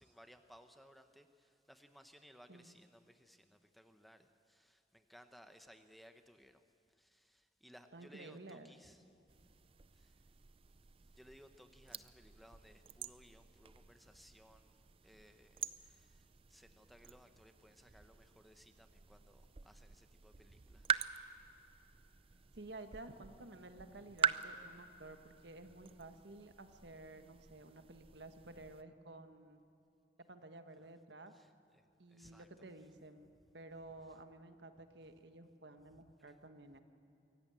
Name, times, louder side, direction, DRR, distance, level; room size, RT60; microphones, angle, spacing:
voice 1, 0.0-9.2 9.9-10.4 11.0-21.0 21.3-21.5 30.8-30.9 31.3-32.7 34.1-34.2 36.0-36.1, equal, ahead, 7 dB, 0.8 m, -62 dB
voice 2, 7.9-8.7 22.5-29.6 30.3-31.3 32.0-36.8, right 2 dB, 70° right, 8 dB, 1.4 m, -53 dB
sound 1, 9.3-28.8, right 7 dB, 30° right, 0.5 m, -45 dB
24.0 x 17.0 x 8.9 m, 2.7 s
head